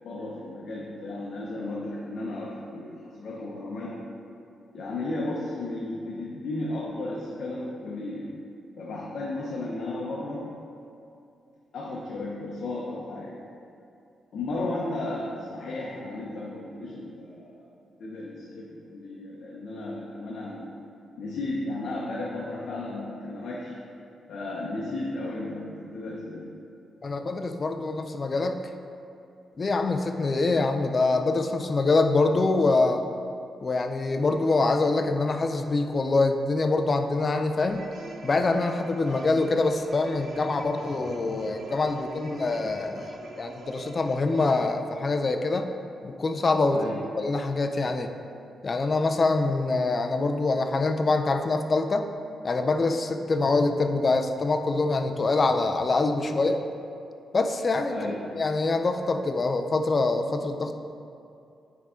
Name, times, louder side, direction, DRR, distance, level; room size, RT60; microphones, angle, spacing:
voice 1, 0.0-4.0 4.7-8.3 8.8-10.5 11.7-13.4 14.3-17.6 18.0-20.7 21.2-23.7 24.3-26.5 46.7-47.0 57.9-58.2, left 2 dB, 65° left, -4 dB, 0.8 m, -34 dB
voice 2, 27.0-28.6 29.6-33.0 33.6-37.8 38.2-45.7 46.0-46.8 47.2-48.1 48.6-52.1 52.4-56.6 57.3-60.8, left 3 dB, 35° left, 6 dB, 0.4 m, -25 dB
sound 1, 37.6-44.7, right 2 dB, 55° right, 0.8 m, -44 dB
9.2 x 3.6 x 3.7 m, 2.6 s
cardioid pair, 130°, 0 cm